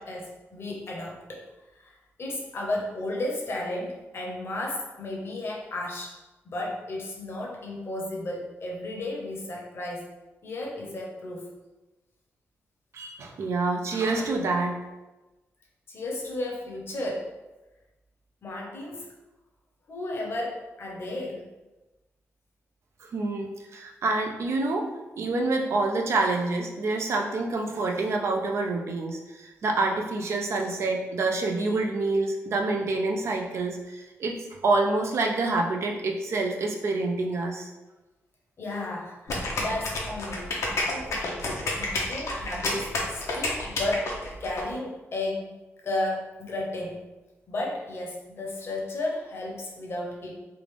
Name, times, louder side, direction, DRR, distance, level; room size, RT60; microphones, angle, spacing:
voice 1, 0.0-1.4 1.7-6.2 6.4-10.1 10.4-11.5 15.9-17.3 18.4-19.1 19.9-21.4 38.6-40.6 40.9-41.5 41.8-45.5 45.8-47.1 47.5-50.4, left 1 dB, 55° left, -1 dB, 0.8 m, -33 dB
voice 2, 12.9-14.7 23.0-24.8 25.2-37.7, right 3 dB, 65° right, 2 dB, 0.5 m, -27 dB
sound 1, 39.3-44.6, left 2 dB, 80° left, 0.7 m, -29 dB
3.4 x 2.5 x 3.3 m, 1.1 s
cardioid pair, 105°, 5 cm